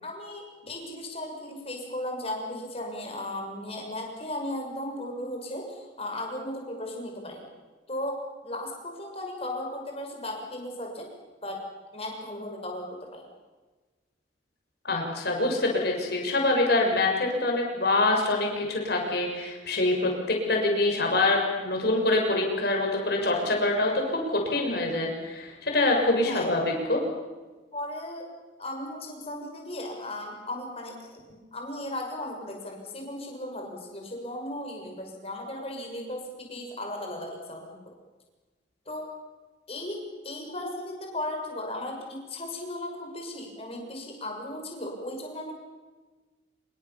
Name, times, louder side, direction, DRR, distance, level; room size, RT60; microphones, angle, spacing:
voice 1, 0.0-7.5 7.9-8.2 8.4-11.1 11.4-11.6 11.9-13.3 26.2-26.5 27.7-28.2 28.6-37.8 38.9-39.1 39.7-45.5, left 1 dB, 30° left, 1 dB, 6.3 m, -36 dB
voice 2, 14.8-23.9 24.3-27.0, left 2 dB, 55° left, 1 dB, 6.6 m, -25 dB
26.5 x 24.0 x 7.2 m, 1.3 s
head